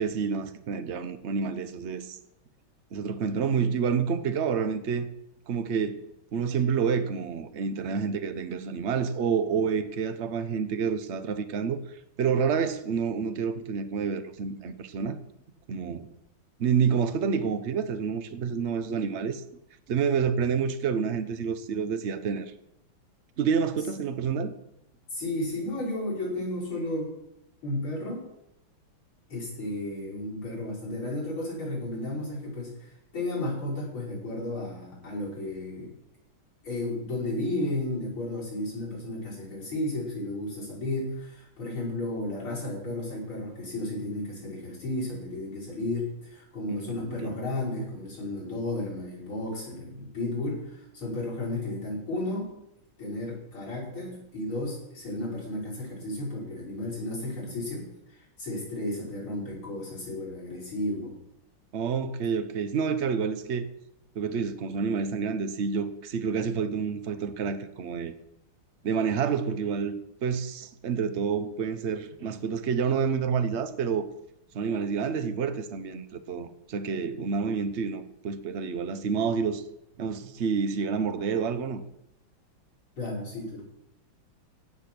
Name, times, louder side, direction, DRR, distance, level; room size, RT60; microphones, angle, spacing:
voice 1, 0.0-2.2 2.9-5.1 5.5-6.0 6.3-11.8 12.2-15.2 15.7-16.1 16.6-19.4 19.9-22.5 23.4-24.5 46.7-47.3 61.7-63.7 64.1-68.1 68.8-69.9 70.2-74.0 74.5-79.6 80.0-81.8, right 6 dB, 65° right, 0.6 m, -28 dB
voice 2, 25.1-27.1 27.6-28.3 29.3-35.9 36.6-52.5 53.0-61.1 83.0-83.6, left 1 dB, 80° left, 6.2 m, -33 dB
16.5 x 6.8 x 6.0 m
omnidirectional pair, 2.3 m